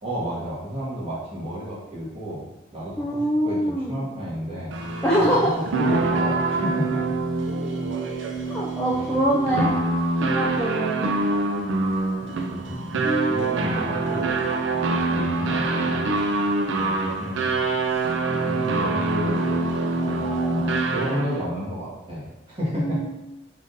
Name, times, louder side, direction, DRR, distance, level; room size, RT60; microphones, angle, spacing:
voice 1, 0.0-4.7 5.1-7.0 8.9-9.8 12.5-14.3 14.9-16.2 16.7-17.5 17.8-19.7 20.0-23.1, equal, 25° right, -8 dB, 1.4 m, -32 dB
voice 2, 3.0-4.0 5.0-5.5 8.5-9.7 10.2-11.1 13.0-13.6 22.8-23.1, equal, 5° left, -6 dB, 0.3 m, -24 dB
sound 1, 4.7-21.4, right 2 dB, 60° right, 0.4 m, -25 dB
3.7 x 2.6 x 3.8 m, 1.0 s
head